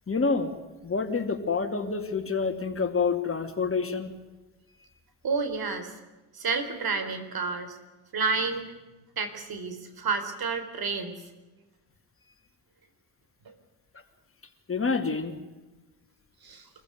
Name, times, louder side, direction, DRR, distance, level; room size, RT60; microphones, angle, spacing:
voice 1, 0.1-0.5 0.8-4.1 14.7-15.4, left 4 dB, 25° left, 6 dB, 2.8 m, -27 dB
voice 2, 5.2-6.0 6.3-7.8 8.1-8.7 9.2-11.2 13.5-13.6 16.4-16.7, right 4 dB, 50° right, 9 dB, 4.0 m, -30 dB
25.5 x 15.0 x 9.5 m, 1.2 s
hypercardioid pair, 65°, 48 cm